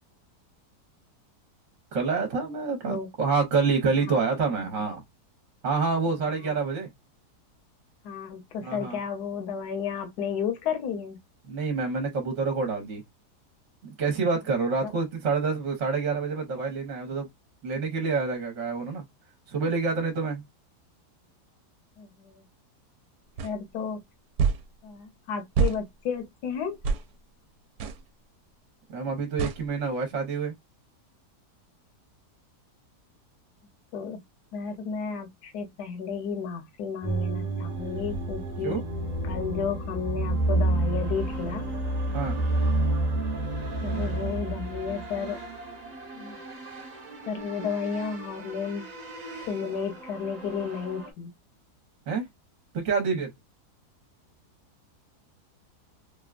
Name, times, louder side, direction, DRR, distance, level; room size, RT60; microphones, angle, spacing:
voice 1, 1.9-5.0 5.6-6.9 8.6-9.0 11.5-13.0 14.0-17.3 17.6-19.0 19.5-20.4 28.9-30.5 38.6-38.8 42.1-42.4 52.1-52.3 52.7-53.3, right 4 dB, 55° right, 1.1 m, -27 dB
voice 2, 8.0-11.2 14.8-14.9 22.0-22.4 23.4-24.0 24.8-26.8 33.9-34.2 34.5-38.8 39.2-41.7 43.8-45.4 46.1-46.4 47.3-48.8 49.5-51.3, left 6 dB, 75° left, 1.3 m, -32 dB
sound 1, 23.4-23.5 24.4-24.6 25.6-25.8 26.8-27.0 27.8-28.0 29.4-29.6, right 5 dB, 75° right, 1.1 m, -25 dB
sound 2, 37.0-51.1, right 2 dB, 35° right, 0.7 m, -30 dB
3.4 x 2.2 x 2.3 m
omnidirectional pair, 1.8 m